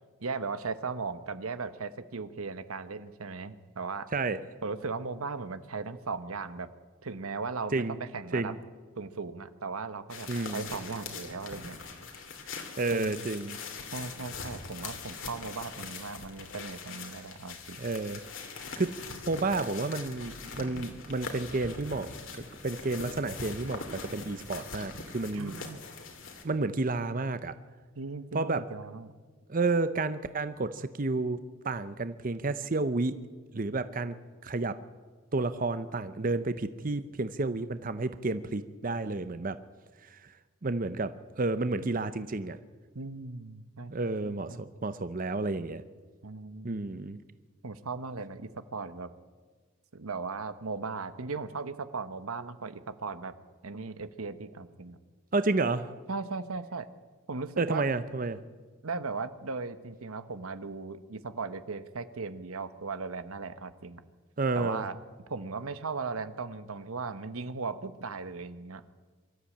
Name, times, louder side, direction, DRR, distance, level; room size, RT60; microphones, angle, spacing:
voice 1, 0.2-4.1 4.6-6.7 7.0-8.5 9.0-11.8 12.9-13.2 13.9-17.8 25.3-25.8 28.0-29.1 42.9-44.6 46.2-47.0 47.6-49.1 49.9-53.3 53.6-55.0 56.1-56.9 57.3-57.8 58.8-64.0 64.5-65.0 65.3-68.8, right 4 dB, 85° right, 12 dB, 1.1 m, -37 dB
sound 1, 10.1-26.4, left 4 dB, 65° left, 2.7 m, -42 dB
voice 2, 10.3-10.7 12.8-13.6 17.8-18.2 18.8-19.0 19.3-22.1 22.6-25.6 26.4-27.5 28.3-28.6 29.5-33.1 33.5-34.2 34.4-34.8 35.3-39.6 40.0-40.3 40.6-42.6 43.9-45.8 46.6-47.2 55.3-55.9 57.6-58.4 64.4-64.8, right 3 dB, 40° right, 12 dB, 0.7 m, -31 dB
23.5 x 13.5 x 8.6 m, 1.4 s
head